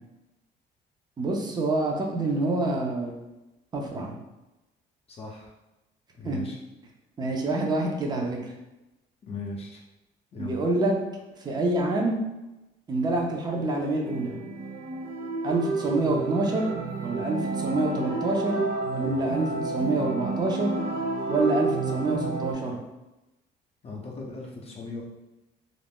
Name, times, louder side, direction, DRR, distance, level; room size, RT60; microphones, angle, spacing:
voice 1, 1.2-3.2 3.7-4.1 6.2-6.4 7.2-8.4 10.4-11.0 11.4-12.2 12.9-14.4 15.4-16.7 17.0-18.6 18.9-20.8 21.3-22.8, right 2 dB, 25° right, 0 dB, 0.5 m, -27 dB
voice 2, 5.1-5.5 6.2-6.6 9.2-9.8 10.3-10.7 23.8-25.0, left 3 dB, 35° left, -1 dB, 0.5 m, -38 dB
sound 1, 13.5-22.5, right 3 dB, 70° right, 0.5 m, -31 dB
2.5 x 2.0 x 3.5 m, 0.99 s
cardioid pair, 110°, 17 cm